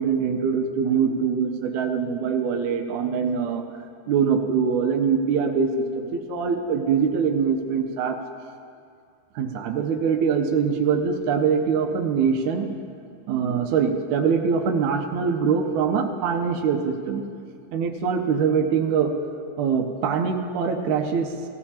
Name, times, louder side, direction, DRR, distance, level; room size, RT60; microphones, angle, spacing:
voice 1, 0.0-3.6 4.1-8.2 9.4-12.7 13.3-17.2 17.7-19.1 19.6-21.3, right 6 dB, 80° right, 3 dB, 2.2 m, -23 dB
19.0 x 15.0 x 2.9 m, 2.4 s
omnidirectional pair, 3.5 m